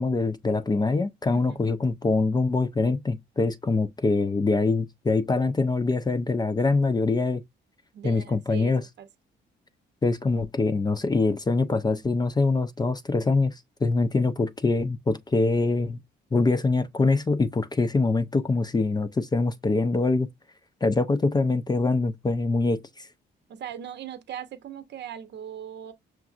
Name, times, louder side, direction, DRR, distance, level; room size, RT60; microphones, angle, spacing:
voice 1, 0.0-7.4 8.0-8.8 10.0-13.5 13.8-16.0 16.3-20.3 20.8-23.1, left 3 dB, 20° left, 0.4 m, -24 dB
voice 2, 7.9-9.1 23.5-25.9, right 9 dB, 60° right, 0.7 m, -39 dB
5.9 x 2.6 x 2.4 m
cardioid pair, 90°, 20 cm